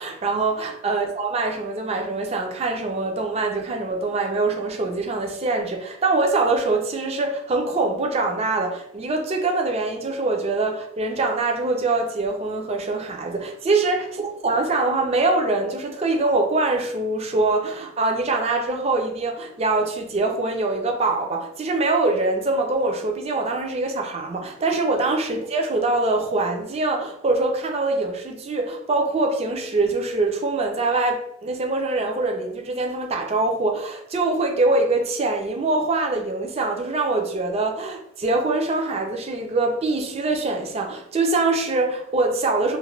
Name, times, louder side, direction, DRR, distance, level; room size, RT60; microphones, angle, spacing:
voice 1, 0.0-42.8, right 3 dB, 30° right, 0.4 m, -24 dB
2.5 x 2.1 x 3.1 m
head